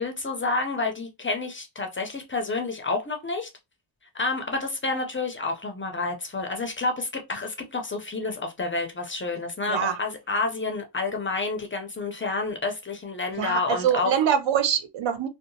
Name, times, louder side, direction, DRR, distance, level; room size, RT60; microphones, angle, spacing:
voice 1, 0.0-3.5 4.1-14.1, left 3 dB, 30° left, 0.4 m, -29 dB
voice 2, 9.7-10.0 13.4-15.3, right 8 dB, 70° right, 0.6 m, -24 dB
2.7 x 2.2 x 2.6 m
wide cardioid pair, 150°, 46 cm